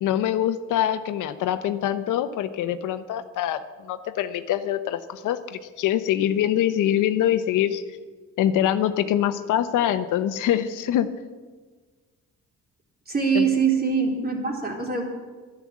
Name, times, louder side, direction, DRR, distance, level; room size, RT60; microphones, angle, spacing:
voice 1, 0.0-7.8 8.4-11.1 13.3-13.4, left 11 dB, 85° left, 11 dB, 0.9 m, -24 dB
voice 2, 13.1-15.0, right 6 dB, 30° right, 1 dB, 3.5 m, -23 dB
11.0 x 11.0 x 7.4 m, 1.4 s
cardioid pair, 90°, 30 cm